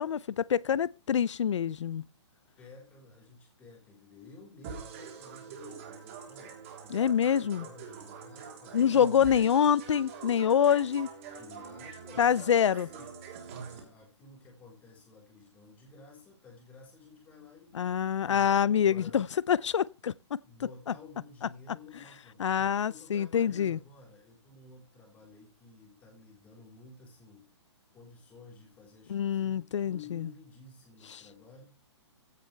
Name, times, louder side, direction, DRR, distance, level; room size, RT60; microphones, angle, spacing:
voice 1, 0.0-2.0 6.9-7.7 8.7-11.1 12.2-12.9 17.7-20.4 21.7-21.8 22.4-23.8 29.1-30.3 31.0-31.2, left 8 dB, 85° left, 0.5 m, -26 dB
voice 2, 2.6-7.0 7.3-9.0 11.3-13.1 13.5-19.2 20.4-27.5 27.9-31.7, left 4 dB, 10° left, 4.1 m, -53 dB
sound 1, 4.6-13.8, right 6 dB, 25° right, 3.5 m, -44 dB
15.5 x 8.5 x 3.4 m
hypercardioid pair, 175°, 15 cm